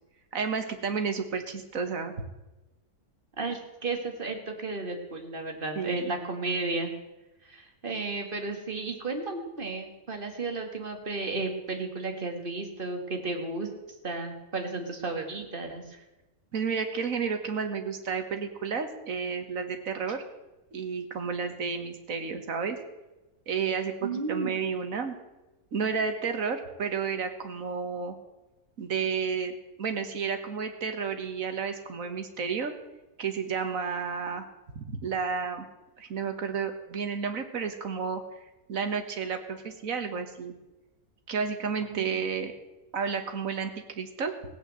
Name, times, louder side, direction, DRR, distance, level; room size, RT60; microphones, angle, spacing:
voice 1, 0.3-2.1 5.8-6.1 16.5-20.2 20.7-22.8 23.5-25.2 25.7-28.2 28.8-32.7 33.2-34.5 34.8-35.7 36.0-38.2 38.7-40.5 41.3-42.5 42.9-43.7 44.0-44.4, right 5 dB, 55° right, 7 dB, 1.8 m, -31 dB
voice 2, 3.4-6.9 7.4-13.7 14.0-16.0 24.0-24.5 41.9-42.1, right 3 dB, 30° right, 4 dB, 2.1 m, -33 dB
16.5 x 8.7 x 7.6 m, 1.1 s
omnidirectional pair, 1.8 m